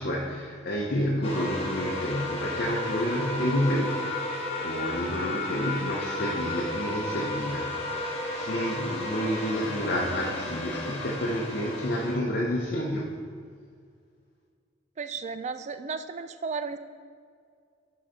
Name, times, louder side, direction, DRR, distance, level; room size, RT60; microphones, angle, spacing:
voice 1, 0.0-13.2, equal, 50° left, -3 dB, 0.8 m, -30 dB
sound 1, 1.2-12.2, left 1 dB, 30° left, 1.2 m, -33 dB
voice 2, 15.0-16.8, right 5 dB, 35° right, 10 dB, 0.4 m, -34 dB
10.5 x 3.9 x 5.2 m, 2.1 s
head